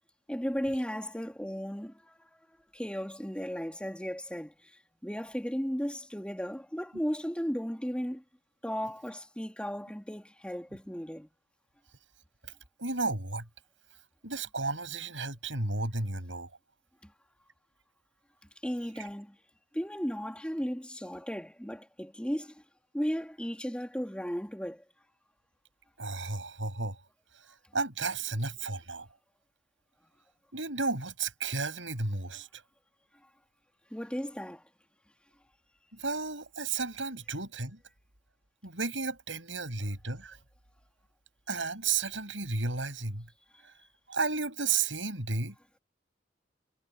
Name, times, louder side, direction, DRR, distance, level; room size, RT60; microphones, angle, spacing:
voice 1, 0.3-2.3 2.7-8.2 8.6-11.3 17.0-17.1 18.6-19.4 19.7-22.6 22.9-24.8 33.9-34.6, equal, 5° left, 3.3 m, -35 dB
voice 2, 12.5-13.5 14.2-16.5 26.0-27.0 27.7-29.1 30.5-32.6 35.9-37.8 38.6-40.4 41.5-43.3 44.1-45.6, right 4 dB, 85° right, 7.2 m, -33 dB
head